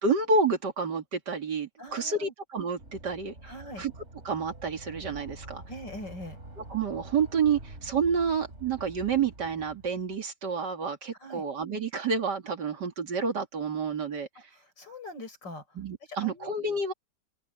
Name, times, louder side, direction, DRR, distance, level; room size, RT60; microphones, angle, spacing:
voice 1, 0.0-3.3 3.8-3.9 4.2-5.6 6.7-14.3 15.8-16.9, right 5 dB, 70° right, 2.9 m, -29 dB
voice 2, 1.8-2.3 3.4-3.9 5.7-6.4 11.2-11.4 14.5-15.6 16.1-16.5, left 1 dB, 85° left, 6.2 m, -42 dB
sound 1, 2.8-10.2, right 2 dB, 40° right, 5.1 m, -47 dB
open air
omnidirectional pair, 1.9 m